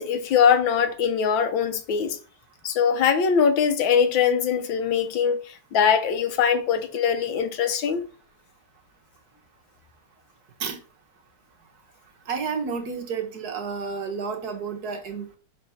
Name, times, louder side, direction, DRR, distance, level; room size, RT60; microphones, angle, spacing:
voice 1, 0.0-2.2 2.6-8.0, left 7 dB, 90° left, 1.7 m, -22 dB
voice 2, 12.3-15.2, right 5 dB, 55° right, 1.6 m, -30 dB
5.6 x 4.2 x 5.6 m
omnidirectional pair, 2.0 m